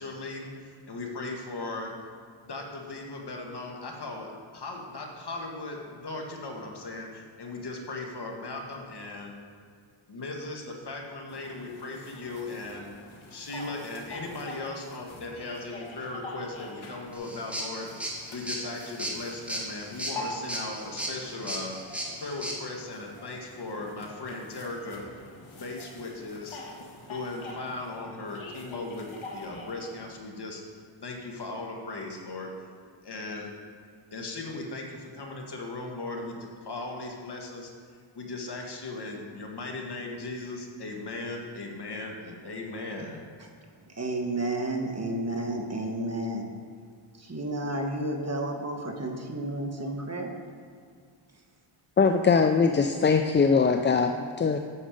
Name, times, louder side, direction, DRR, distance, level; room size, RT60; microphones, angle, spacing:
voice 1, 0.0-1.9 2.4-9.4 10.1-12.9 13.3-21.9 22.2-25.0 25.5-26.6 27.1-29.1 29.3-30.6 31.0-32.5 33.0-33.5 34.1-37.7 38.1-43.2, left 2 dB, 50° left, 1 dB, 1.7 m, -38 dB
sound 1, 11.3-30.2, left 2 dB, 70° left, 1.6 m, -45 dB
sound 2, 17.1-22.6, right 1 dB, 5° right, 1.8 m, -36 dB
voice 2, 43.7-46.5 47.1-50.3 51.3-51.4, right 1 dB, 30° right, 2 dB, 1.3 m, -32 dB
voice 3, 52.0-54.6, left 5 dB, 25° left, 6 dB, 0.3 m, -22 dB
8.7 x 6.5 x 5.1 m, 2.1 s
cardioid pair, 75°, 49 cm